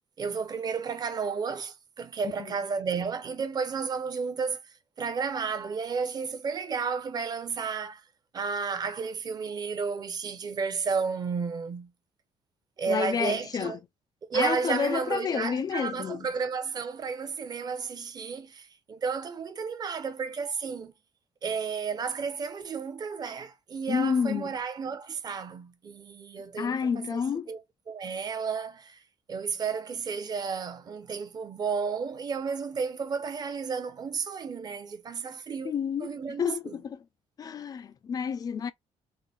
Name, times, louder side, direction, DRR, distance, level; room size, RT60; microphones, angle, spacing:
voice 1, 0.2-4.6 5.0-8.0 8.3-11.9 12.8-13.8 14.3-20.9 21.4-27.2 27.5-27.6 27.9-29.0 29.3-35.7 36.0-36.8, right 5 dB, 35° right, 0.6 m, -32 dB
voice 2, 12.9-13.8 14.3-16.3 23.9-24.5 26.6-27.5 35.6-37.0 37.4-38.7, left 6 dB, 35° left, 0.3 m, -30 dB
3.7 x 2.0 x 2.3 m
cardioid pair, 135°, 11 cm